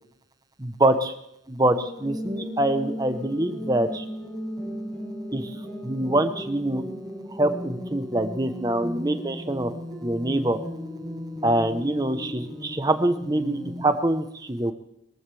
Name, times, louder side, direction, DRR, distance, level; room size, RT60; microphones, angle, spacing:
voice 1, 0.6-1.1 1.5-4.0 5.3-5.5 5.8-6.8 7.3-9.7 10.0-10.6 11.4-14.7, right 1 dB, 20° right, 9 dB, 1.0 m, -24 dB
sound 1, 1.6-13.8, equal, 5° left, 4.3 m, -36 dB
22.5 x 14.5 x 3.4 m, 0.78 s
head